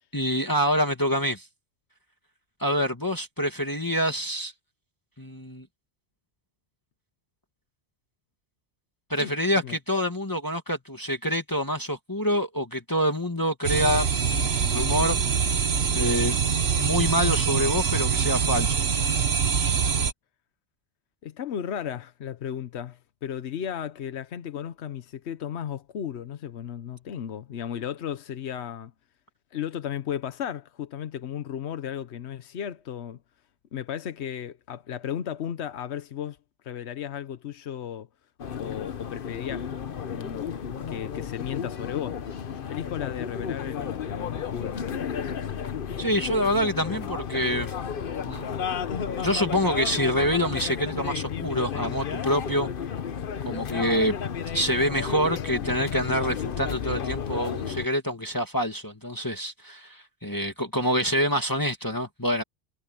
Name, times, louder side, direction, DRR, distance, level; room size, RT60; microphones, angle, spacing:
voice 1, 0.1-1.5 2.6-4.5 5.2-5.7 9.1-15.7 15.9-16.4 16.8-18.8 46.0-47.7 48.3-48.6 49.2-52.7 53.5-54.2 54.5-62.4, equal, 20° left, 2.0 m, -26 dB
sound 1, 13.6-20.1, right 6 dB, 70° right, 1.4 m, -24 dB
voice 2, 21.2-28.9 29.5-33.2 33.7-36.4 36.6-38.1 38.6-39.7 40.1-40.5 40.9-42.4 42.7-44.8 45.2-45.3, left 9 dB, 80° left, 1.1 m, -35 dB
sound 2, 38.4-57.9, left 7 dB, 55° left, 1.0 m, -33 dB
omnidirectional pair, 1.1 m